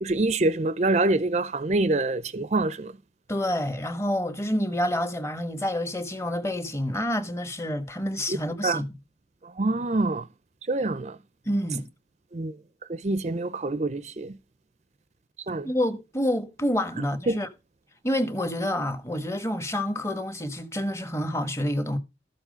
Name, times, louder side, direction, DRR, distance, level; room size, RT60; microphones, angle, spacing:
voice 1, 0.0-2.9 8.6-8.8 9.6-10.2 10.7-11.2 12.3-12.5 12.9-14.3 15.5-15.7 17.3-17.4, right 2 dB, 40° right, 0.5 m, -25 dB
voice 2, 3.3-8.9 11.4-11.9 15.6-17.5 18.0-22.0, left 1 dB, 15° left, 1.3 m, -28 dB
13.0 x 7.3 x 5.2 m
head